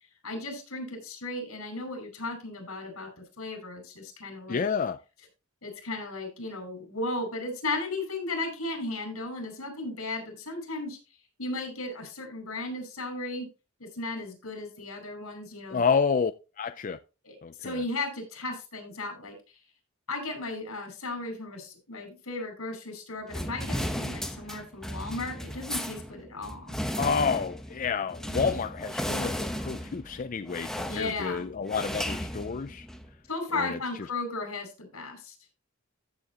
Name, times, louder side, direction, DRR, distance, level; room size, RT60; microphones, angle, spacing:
voice 1, 0.2-4.7 5.6-11.0 11.4-13.5 13.8-15.8 17.2-17.3 17.6-19.3 20.1-26.8 30.9-31.5 33.3-35.3, left 2 dB, 85° left, 5.0 m, -35 dB
voice 2, 4.5-5.0 15.7-16.3 16.6-17.0 17.4-17.8 27.0-32.9 33.5-33.8, left 5 dB, 35° left, 0.4 m, -29 dB
sound 1, 23.3-33.1, equal, ahead, 0.9 m, -35 dB
14.5 x 7.2 x 2.9 m
head